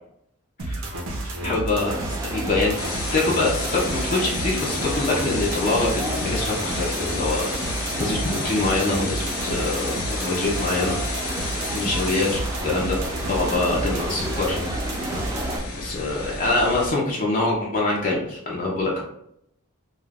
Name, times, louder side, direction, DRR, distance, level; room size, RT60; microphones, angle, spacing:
sound 1, 0.6-15.6, right 1 dB, 80° right, 0.7 m, -31 dB
voice 1, 1.4-2.7 3.1-7.5 8.0-11.0 11.7-13.0 13.3-14.6 15.8-19.0, left 2 dB, 40° left, -3 dB, 0.5 m, -24 dB
sound 2, 1.8-15.6, right 2 dB, 15° right, 0.4 m, -33 dB
sound 3, 2.8-16.9, left 3 dB, 85° left, 0.7 m, -33 dB
2.4 x 2.4 x 3.3 m, 0.75 s
head